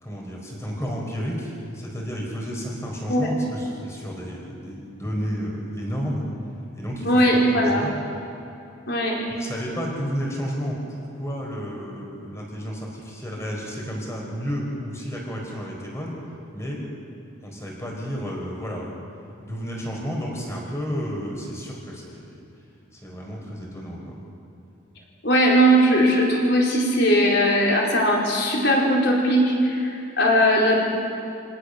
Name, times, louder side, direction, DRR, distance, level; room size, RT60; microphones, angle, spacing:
voice 1, 0.0-6.2 6.7-8.0 9.3-16.2 16.5-16.8 17.4-18.9 19.4-22.3 22.9-24.1, equal, 15° left, -2 dB, 4.6 m, -31 dB
voice 2, 7.0-7.9 8.9-9.2 25.2-30.8, equal, 55° left, -2 dB, 4.5 m, -19 dB
26.5 x 18.0 x 6.7 m, 2.7 s
head